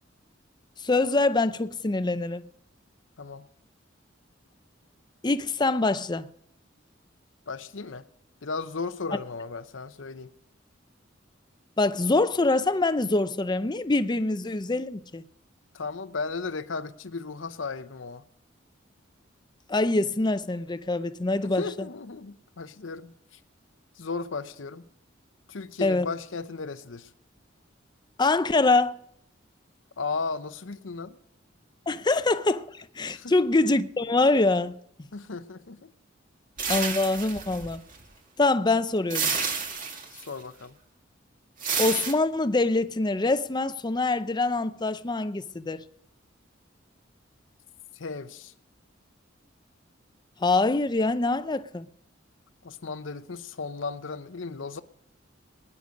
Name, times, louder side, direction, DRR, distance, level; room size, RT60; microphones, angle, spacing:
voice 1, 0.8-2.4 5.2-6.3 11.8-15.2 19.7-21.9 25.8-26.1 28.2-29.0 31.9-34.8 36.7-37.8 38.4-39.3 41.8-45.8 50.4-51.9, left 2 dB, 25° left, 0.6 m, -24 dB
voice 2, 3.2-3.5 7.5-8.0 8.4-10.3 15.7-18.2 21.4-23.1 24.0-24.9 25.5-27.1 30.0-31.1 33.1-33.3 35.1-35.9 40.1-40.8 47.9-48.5 52.6-54.8, left 4 dB, 75° left, 0.8 m, -35 dB
sound 1, 36.6-38.0 39.1-40.3 41.6-42.1, right 5 dB, 45° right, 2.0 m, -29 dB
21.0 x 10.0 x 5.2 m
head